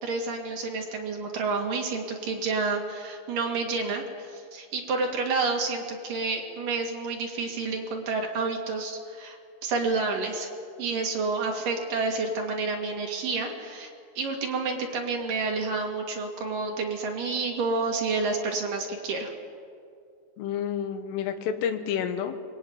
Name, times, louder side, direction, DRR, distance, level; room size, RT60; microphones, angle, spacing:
voice 1, 0.0-9.4 9.6-10.5 10.8-13.9 14.1-19.3, right 4 dB, 50° right, 1 dB, 3.3 m, -29 dB
voice 2, 20.4-22.5, left 8 dB, 80° left, 8 dB, 4.0 m, -30 dB
23.0 x 22.5 x 9.5 m, 2.4 s
omnidirectional pair, 5.7 m